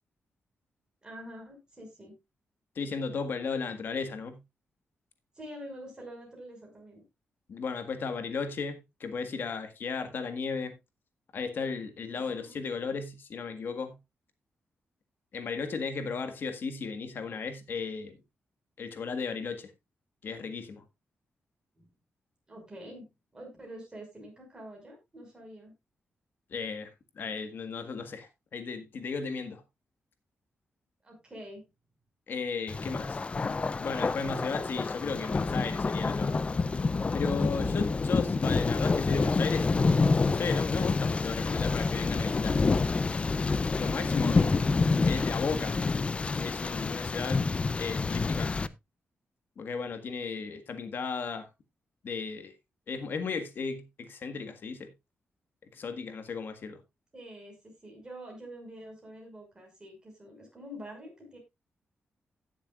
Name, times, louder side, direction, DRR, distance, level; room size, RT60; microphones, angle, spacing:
voice 1, 1.0-2.1 5.3-7.0 12.2-12.6 21.8-21.9 22.5-23.1 23.3-25.7 31.0-31.6 44.3-44.7 57.1-61.4, equal, 20° right, 5.5 m, -46 dB
voice 2, 2.7-4.4 7.5-10.7 11.3-14.0 15.3-18.2 18.8-19.7 20.2-20.8 26.5-26.9 27.1-29.6 32.3-33.2 33.8-36.4 37.1-42.6 43.8-44.4 45.0-45.8 46.3-47.5 47.8-48.5 49.6-51.5 52.0-52.5 52.9-54.9 55.7-56.8, left 5 dB, 60° left, 1.7 m, -35 dB
Thunder, 32.7-48.7, left 4 dB, 30° left, 0.5 m, -28 dB
17.0 x 7.2 x 2.4 m
wide cardioid pair, 135°, 4 cm